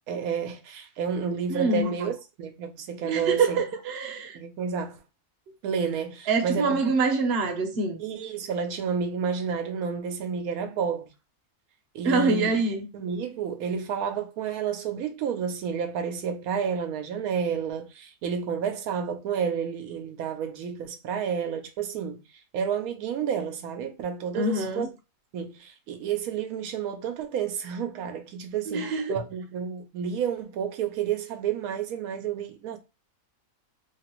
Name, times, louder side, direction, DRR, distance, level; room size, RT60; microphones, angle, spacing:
voice 1, 0.1-3.6 4.3-5.0 5.6-6.9 8.0-11.1 11.9-12.6 12.9-22.2 22.5-24.9 25.3-32.8, right 7 dB, 85° right, 1.1 m, -30 dB
voice 2, 1.5-1.9 3.0-4.4 6.3-8.0 12.0-12.9 24.3-24.9 28.7-29.2, right 3 dB, 55° right, 0.9 m, -25 dB
3.0 x 2.4 x 2.9 m
omnidirectional pair, 1.5 m